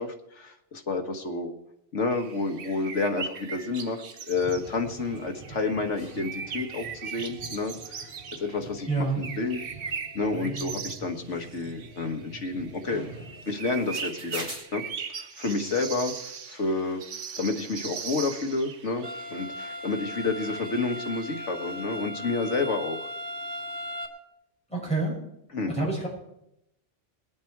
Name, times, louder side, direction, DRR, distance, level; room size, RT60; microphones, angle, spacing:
voice 1, 0.0-1.5 1.9-9.7 10.2-13.0 13.5-14.5 14.7-14.8 15.1-17.0 17.4-23.1 25.5-25.9, left 3 dB, 75° left, 6 dB, 1.8 m, -30 dB
sound 1, 2.1-21.8, right 6 dB, 85° right, 1.3 m, -40 dB
sound 2, 4.3-14.6, right 2 dB, 30° right, 4.8 m, -45 dB
voice 2, 8.9-9.2 10.3-10.8 24.7-25.1 25.7-26.1, right 3 dB, 5° left, -5 dB, 6.9 m, -28 dB
sound 3, 19.0-24.1, equal, 70° right, 2.5 m, -37 dB
22.0 x 8.5 x 4.6 m, 0.81 s
omnidirectional pair, 1.2 m